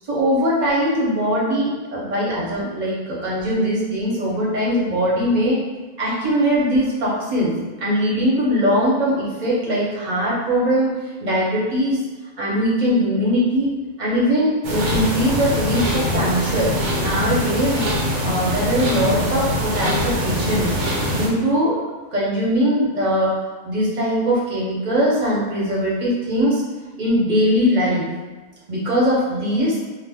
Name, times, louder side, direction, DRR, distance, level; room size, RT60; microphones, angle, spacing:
voice 1, 0.1-5.6 6.0-7.5 7.8-10.9 11.2-12.0 12.4-13.7 14.0-17.8 18.2-20.7 21.1-21.8 22.1-23.4 23.6-26.6 27.0-28.0 28.7-29.8, equal, 40° right, -7 dB, 0.8 m, -21 dB
sound 1, 14.6-21.3, equal, 80° right, 1.1 m, -23 dB
2.5 x 2.1 x 3.4 m, 1.3 s
omnidirectional pair, 1.5 m